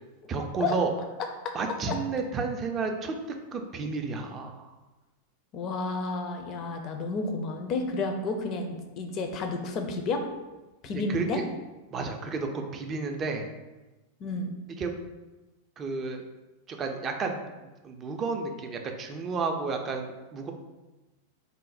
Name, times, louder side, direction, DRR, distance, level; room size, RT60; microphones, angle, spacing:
voice 1, 0.3-0.9 1.5-3.1 3.5-4.8 10.9-11.4 11.9-13.5 14.8-14.9 15.8-16.2 16.7-17.4 17.8-20.5, right 4 dB, 25° right, 4 dB, 0.4 m, -31 dB
voice 2, 5.5-10.2 10.8-11.4 14.2-14.5, left 3 dB, 35° left, 4 dB, 0.4 m, -31 dB
3.1 x 2.0 x 4.0 m, 1.1 s
figure-of-eight pair, 90°, 0 cm